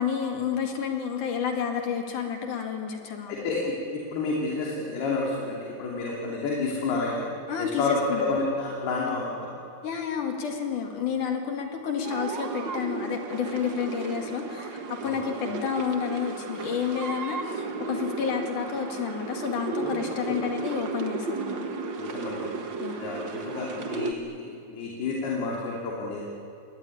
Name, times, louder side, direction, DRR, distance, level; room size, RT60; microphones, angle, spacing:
voice 1, 0.0-3.3 7.5-8.2 9.8-21.7 22.8-23.0, left 7 dB, 55° left, 3 dB, 3.4 m, -30 dB
voice 2, 3.3-3.6 3.9-7.2 7.6-9.5 15.0-15.2 19.7-20.0 22.0-22.5 23.0-26.2, left 3 dB, 85° left, -3 dB, 5.0 m, -30 dB
sound 1, 12.0-24.1, right 4 dB, 65° right, 1.1 m, -34 dB
26.5 x 22.0 x 9.9 m, 2.5 s
omnidirectional pair, 4.5 m